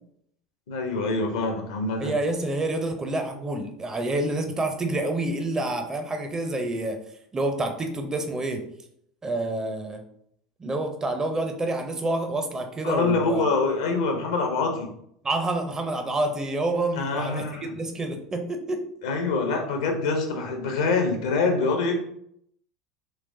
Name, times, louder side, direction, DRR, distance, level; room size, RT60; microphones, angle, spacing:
voice 1, 0.7-2.1 12.8-14.9 16.9-17.8 19.0-21.9, left 3 dB, 60° left, 3 dB, 0.7 m, -25 dB
voice 2, 2.0-7.0 7.3-8.6 9.2-10.0 10.6-13.4 15.2-18.8, right 2 dB, 20° right, 5 dB, 0.5 m, -28 dB
3.1 x 3.1 x 2.6 m, 0.71 s
figure-of-eight pair, 75°, 3 cm